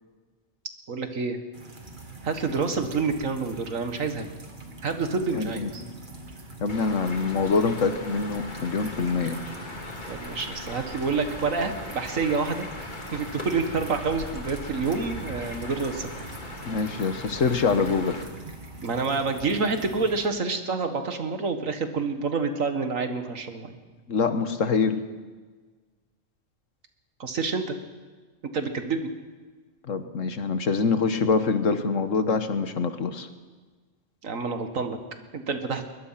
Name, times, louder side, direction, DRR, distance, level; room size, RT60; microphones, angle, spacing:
voice 1, 0.9-1.4 2.2-4.2 4.8-5.8 10.1-16.1 18.8-23.8 27.2-27.8 28.5-29.1 34.2-35.0 35.3-35.8, right 4 dB, 85° right, 7 dB, 2.1 m, -28 dB
sound 1, 1.5-20.3, right 2 dB, 40° right, 2.1 m, -43 dB
voice 2, 5.3-5.7 6.6-9.4 16.7-18.2 24.1-25.0 29.9-33.3, left 4 dB, 75° left, 9 dB, 1.7 m, -25 dB
sound 2, 6.7-18.2, left 2 dB, 35° left, 2.2 m, -39 dB
22.0 x 20.5 x 5.9 m, 1.4 s
omnidirectional pair, 1.3 m